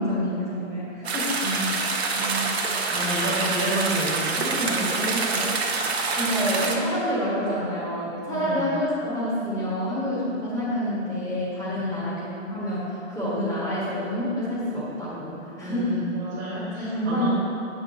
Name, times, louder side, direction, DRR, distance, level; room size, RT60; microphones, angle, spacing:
voice 1, 0.0-1.4 6.1-12.8 13.1-15.9 16.5-17.3, equal, 10° left, -9 dB, 1.5 m, -28 dB
sound 1, 1.0-6.8, right 4 dB, 55° right, 0.8 m, -26 dB
voice 2, 1.4-5.5 8.3-8.7 11.7-12.1 15.6-17.3, right 1 dB, 20° right, -7 dB, 1.4 m, -30 dB
8.6 x 6.2 x 2.8 m, 2.9 s
figure-of-eight pair, 120°, 39 cm